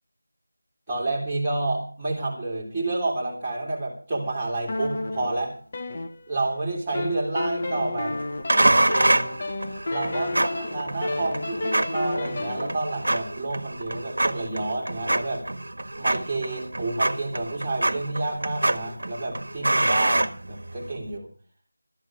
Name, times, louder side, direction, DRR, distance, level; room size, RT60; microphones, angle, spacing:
voice 1, 0.9-5.5 6.3-8.2 9.9-15.4 15.9-21.3, right 2 dB, ahead, -8 dB, 3.2 m, -29 dB
sound 1, 4.7-6.5 6.9-12.7, left 2 dB, 25° left, 0.9 m, -31 dB
sound 2, 8.5-21.0, right 1 dB, 60° right, 1.4 m, -26 dB
12.5 x 9.0 x 7.9 m, 0.42 s
figure-of-eight pair, 175°, 0 cm